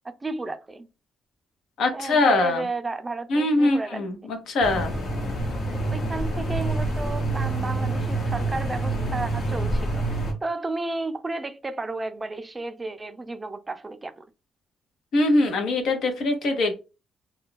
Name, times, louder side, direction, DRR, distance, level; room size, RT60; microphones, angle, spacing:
voice 1, 0.0-0.9 1.9-4.1 5.9-14.2, right 2 dB, 20° right, 0.4 m, -33 dB
voice 2, 1.8-2.6 3.3-4.9 15.1-16.7, left 2 dB, 75° left, 0.8 m, -22 dB
sound 1, 4.6-10.3, right 2 dB, 55° left, 1.0 m, -27 dB
2.4 x 2.2 x 3.7 m
cardioid pair, 90°, 0 cm